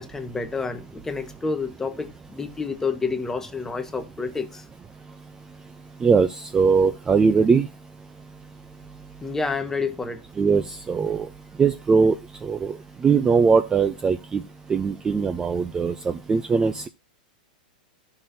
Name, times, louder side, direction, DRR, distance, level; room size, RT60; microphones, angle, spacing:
voice 1, 0.0-4.6 9.2-10.2, left 4 dB, 10° left, 1.0 m, -29 dB
voice 2, 6.5-7.7 10.4-11.3 11.6-12.1 12.4-12.8 13.0-14.4 14.7-15.9 16.3-16.9, right 5 dB, 15° right, 0.5 m, -20 dB
14.0 x 5.8 x 2.7 m
hypercardioid pair, 130°, 5 cm